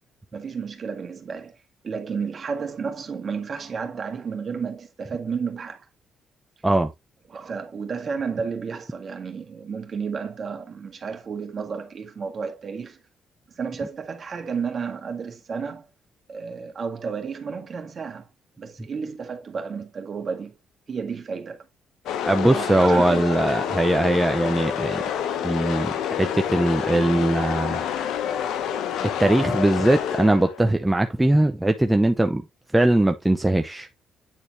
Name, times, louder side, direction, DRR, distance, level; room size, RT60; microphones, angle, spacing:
voice 1, 0.3-1.6 1.8-5.9 7.3-13.0 13.5-15.9 16.3-18.3 18.6-20.6 20.9-21.7 22.5-23.8, right 5 dB, 45° right, 1.8 m, -32 dB
sound 1, 22.1-30.7, left 9 dB, 85° left, 0.8 m, -28 dB
voice 2, 22.3-25.0 25.4-27.8 29.2-32.4 32.7-33.9, right 1 dB, 10° right, 0.7 m, -20 dB
9.1 x 4.0 x 3.1 m
cardioid pair, 90°, 0 cm